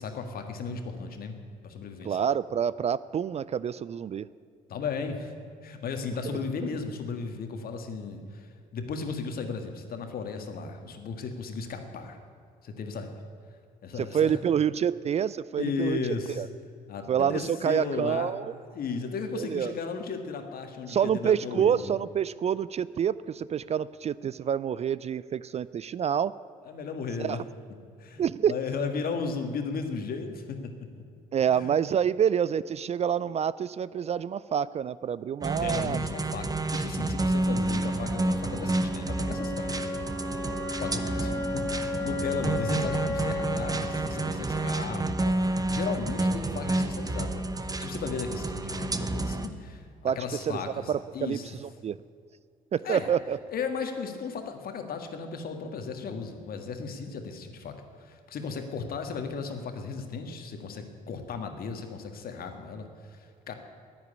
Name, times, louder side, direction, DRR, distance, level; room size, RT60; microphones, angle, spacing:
voice 1, 0.0-1.3 1.6-2.2 4.7-5.3 5.6-12.2 12.6-13.1 13.8-14.4 15.6-16.4 16.9-18.3 18.7-21.8 26.6-27.4 28.0-30.7 31.4-31.7 35.6-39.9 40.8-51.5 52.8-53.1 53.5-57.7 58.0-63.5, left 5 dB, 55° left, 6 dB, 1.7 m, -35 dB
voice 2, 2.0-4.3 14.0-16.0 16.4-16.5 17.1-18.5 19.3-19.7 20.9-26.3 27.2-27.4 28.2-28.5 31.3-36.0 50.0-50.2 50.5-50.6 50.9-52.0 52.7-53.4, right 8 dB, 35° right, 18 dB, 0.4 m, -27 dB
sound 1, 35.4-49.5, right 2 dB, 20° right, 1.0 m, -30 dB
Wind instrument woodwind instrument, 37.4-45.4, left 2 dB, 15° left, 2.8 m, -35 dB
10.0 x 9.5 x 9.6 m, 2.4 s
hypercardioid pair, 55°, 18 cm